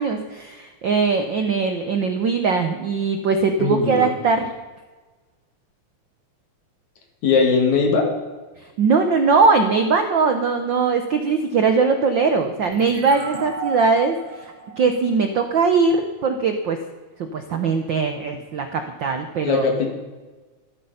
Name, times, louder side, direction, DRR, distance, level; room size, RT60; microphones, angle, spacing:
voice 1, 0.0-4.5 8.6-16.8 17.2-19.7, right 4 dB, 70° right, 7 dB, 1.1 m, -20 dB
voice 2, 3.6-4.1 7.2-8.1 19.4-19.9, left 5 dB, 70° left, 3 dB, 3.6 m, -19 dB
sound 1, 12.6-16.0, right 3 dB, 35° right, 3.2 m, -35 dB
14.0 x 13.0 x 5.6 m, 1.3 s
omnidirectional pair, 3.4 m